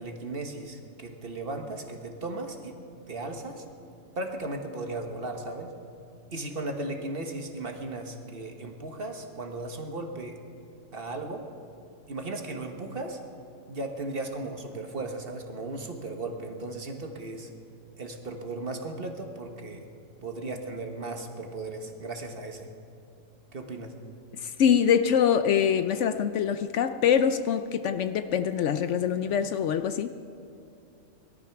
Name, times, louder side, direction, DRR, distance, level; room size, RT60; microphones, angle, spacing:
voice 1, 0.0-2.8 3.1-3.6 4.1-5.7 6.3-10.4 10.9-11.5 12.1-13.2 13.7-17.5 18.0-19.9 20.2-22.7 23.5-23.9, right 2 dB, 45° right, 4 dB, 1.4 m, -36 dB
voice 2, 24.4-30.1, left 8 dB, 70° left, 11 dB, 0.9 m, -24 dB
19.0 x 12.5 x 5.9 m, 2.7 s
omnidirectional pair, 1.4 m